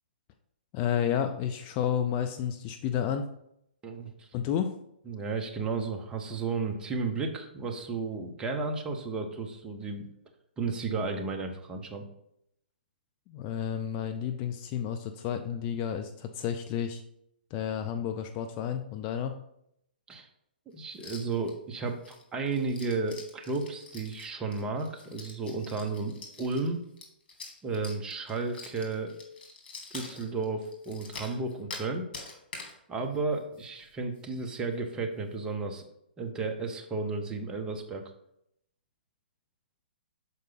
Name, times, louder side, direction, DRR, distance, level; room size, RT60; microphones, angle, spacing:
voice 1, 0.7-3.3 4.3-4.7 13.3-17.0 17.5-19.4, left 9 dB, 25° left, 6 dB, 0.4 m, -31 dB
voice 2, 3.8-4.3 5.1-10.1 10.6-12.1 20.1-20.3 20.7-26.8 27.6-29.1 29.9-32.1 32.9-35.9 36.2-38.1, right 3 dB, 15° right, 3 dB, 0.7 m, -33 dB
sound 1, 20.9-21.5 21.8-31.9 32.1-32.7 33.1-33.2 33.5-33.9 34.2-34.3 34.7-34.9, left 3 dB, 60° left, 2.2 m, -46 dB
6.6 x 4.6 x 3.9 m, 0.76 s
hypercardioid pair, 140°, 6 cm